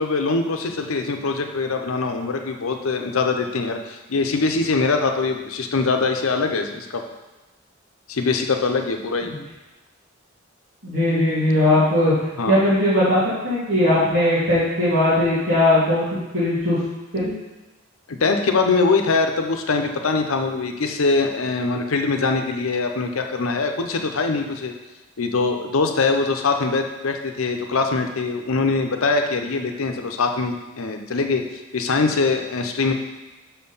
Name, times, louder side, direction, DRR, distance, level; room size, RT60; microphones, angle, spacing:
voice 1, 0.0-7.0 8.1-9.3 12.4-12.6 18.1-24.7 25.2-32.9, left 4 dB, 85° left, 5 dB, 0.7 m, -23 dB
voice 2, 10.8-12.1 12.5-16.1 16.3-16.8 17.1-17.3, left 1 dB, 75° right, -13 dB, 2.4 m, -19 dB
5.8 x 4.4 x 5.5 m, 1.1 s
head